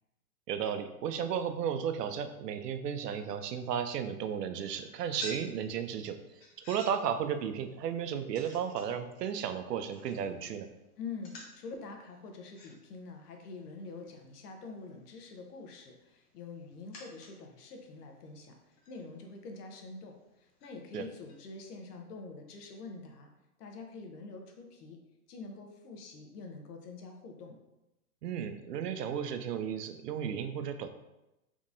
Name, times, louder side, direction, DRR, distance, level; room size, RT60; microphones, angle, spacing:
voice 1, 0.5-10.7 20.9-21.0 28.2-30.9, right 8 dB, 90° right, 9 dB, 0.6 m, -34 dB
sound 1, 4.6-21.4, left 1 dB, 35° left, 0.7 m, -54 dB
voice 2, 11.0-18.6 18.9-23.3 23.6-25.0 25.3-27.6, left 4 dB, 75° left, 3 dB, 0.9 m, -46 dB
3.6 x 2.9 x 2.6 m, 0.95 s
hypercardioid pair, 140°, 46 cm